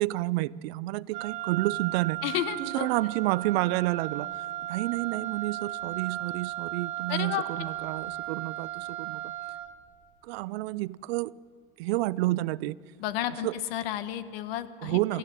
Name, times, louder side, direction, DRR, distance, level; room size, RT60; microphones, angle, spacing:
voice 1, 0.0-2.2 2.6-4.3 4.7-9.2 10.2-11.3 11.8-12.8 13.4-13.5 14.8-15.2, right 19 dB, 85° right, 0.5 m, -29 dB
Wind instrument woodwind instrument, 1.1-9.8, right 15 dB, 65° right, 1.5 m, -36 dB
voice 2, 2.2-2.9 7.1-7.4 13.0-15.2, left 12 dB, 75° left, 1.3 m, -32 dB
23.0 x 14.5 x 9.1 m
supercardioid pair, 165°, 30 cm